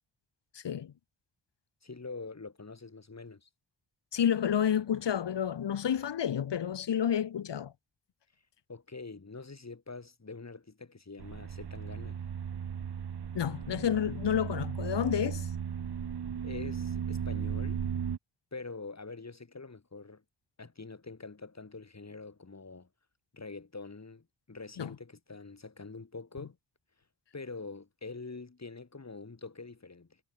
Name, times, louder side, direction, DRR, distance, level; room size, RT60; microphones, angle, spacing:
voice 1, 0.5-0.9 4.1-7.7 13.3-15.5 24.8-24.9, left 9 dB, 65° left, 2.0 m, -30 dB
voice 2, 1.8-3.5 8.7-12.2 16.4-17.9 18.5-20.2 20.6-22.9 23.3-26.6 27.3-30.2, left 3 dB, 35° left, 6.1 m, -45 dB
sound 1, 11.2-18.2, right 8 dB, 60° right, 2.0 m, -36 dB
supercardioid pair, 45°, 45 cm